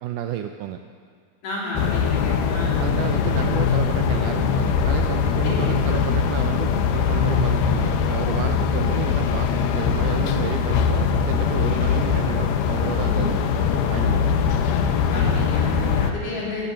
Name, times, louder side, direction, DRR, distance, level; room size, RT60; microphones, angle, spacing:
voice 1, 0.0-0.8 2.8-13.5 13.9-14.5, right 10 dB, 85° right, 7 dB, 1.8 m, -31 dB
voice 2, 1.4-2.8 5.4-5.8 15.1-16.7, left 2 dB, 60° left, -4 dB, 4.2 m, -31 dB
sound 1, 1.8-16.1, left 6 dB, 85° left, 2.7 m, -21 dB
13.0 x 12.5 x 6.9 m, 2.1 s
omnidirectional pair, 4.3 m